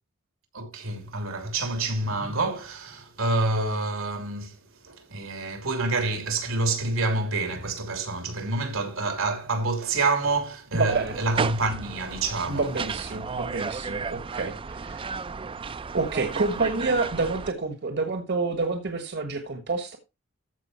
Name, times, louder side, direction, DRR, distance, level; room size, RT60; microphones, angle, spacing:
voice 1, 0.5-4.6 4.8-12.7, right 2 dB, 85° right, 3.0 m, -27 dB
voice 2, 10.7-11.1 12.5-15.0 15.9-20.0, right 3 dB, 55° right, 1.4 m, -28 dB
sound 1, 10.9-17.5, right 5 dB, 25° right, 0.4 m, -34 dB
14.0 x 5.3 x 4.3 m
head